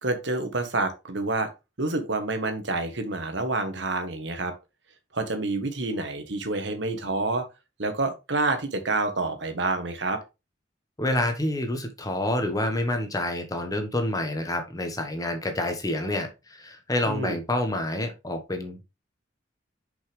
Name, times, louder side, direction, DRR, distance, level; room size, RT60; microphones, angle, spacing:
voice 1, 0.0-1.5 1.8-4.5 5.1-7.4 7.8-10.2 17.1-17.4, right 2 dB, 70° right, 1.4 m, -28 dB
voice 2, 11.0-18.8, left 1 dB, 20° left, 1.2 m, -28 dB
6.7 x 5.5 x 3.4 m
head